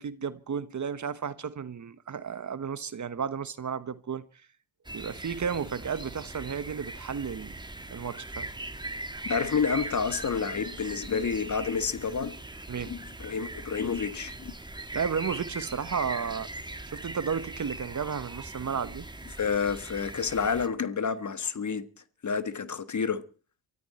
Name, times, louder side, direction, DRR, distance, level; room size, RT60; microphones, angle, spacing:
voice 1, 0.0-4.2 4.9-7.6 7.9-8.5 12.7-13.0 14.9-16.5 16.9-19.1, right 6 dB, 40° right, 1.1 m, -33 dB
sound 1, 4.8-20.7, right 2 dB, 10° right, 1.5 m, -40 dB
voice 2, 9.3-12.4 12.9-14.5 19.4-21.8 22.2-23.2, left 6 dB, 40° left, 1.6 m, -29 dB
23.5 x 14.0 x 4.3 m
supercardioid pair, 65°, 46 cm